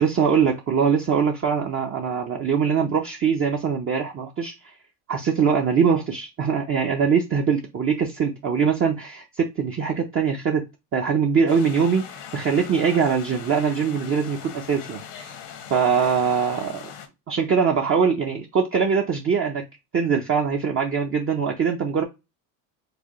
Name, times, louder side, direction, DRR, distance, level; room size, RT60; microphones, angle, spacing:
voice 1, 0.0-4.7 5.1-10.6 10.9-15.4 15.7-16.9 17.3-19.6 19.9-22.0, right 6 dB, 25° right, 0.6 m, -22 dB
sound 1, 11.5-17.1, left 8 dB, 75° left, 1.1 m, -40 dB
4.8 x 2.1 x 3.0 m
supercardioid pair, 95°, 49 cm